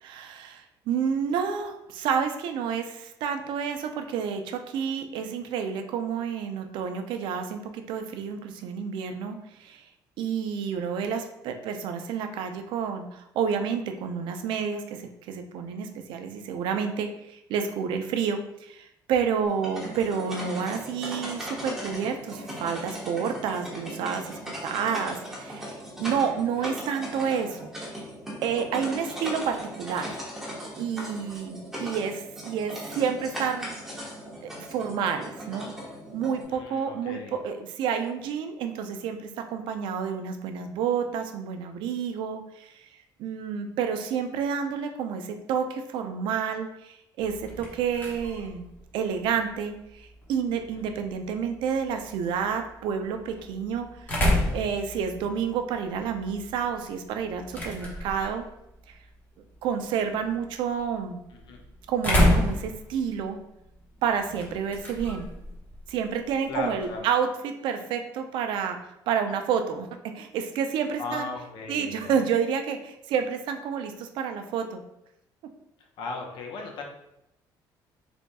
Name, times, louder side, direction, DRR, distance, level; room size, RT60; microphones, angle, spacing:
voice 1, 0.0-9.9 10.2-28.0 28.4-30.2 30.8-33.7 34.4-35.7 36.1-42.9 43.2-58.5 59.6-61.2 61.9-63.4 64.0-65.3 65.9-68.8 69.1-69.9 70.1-71.3 71.7-74.8, right 7 dB, 85° right, 6 dB, 0.4 m, -29 dB
sound 1, 19.4-36.4, equal, 5° right, 1.0 m, -38 dB
voice 2, 36.5-37.4 50.7-50.8 61.3-61.6 66.5-67.1 71.0-72.1 76.0-76.8, left 3 dB, 75° left, 1 dB, 0.8 m, -36 dB
sound 2, 47.2-67.0, left 1 dB, 20° left, 1.0 m, -32 dB
3.4 x 2.3 x 4.0 m, 0.83 s
cardioid pair, 145°, 8 cm